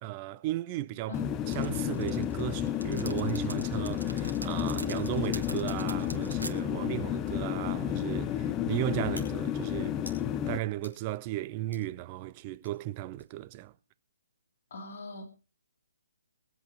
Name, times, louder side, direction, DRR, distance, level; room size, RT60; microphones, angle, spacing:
voice 1, 0.0-1.2 1.5-10.0 10.5-13.7, right 15 dB, 30° right, 0.6 m, -35 dB
sound 1, 1.1-10.6, left 10 dB, 20° left, 0.6 m, -31 dB
sound 2, 1.5-6.5, right 3 dB, 75° right, 1.9 m, -42 dB
sound 3, 7.2-13.5, left 1 dB, 90° left, 5.2 m, -54 dB
voice 2, 14.7-15.3, left 3 dB, 50° left, 3.3 m, -42 dB
22.0 x 8.2 x 4.6 m
figure-of-eight pair, 135°, 0 cm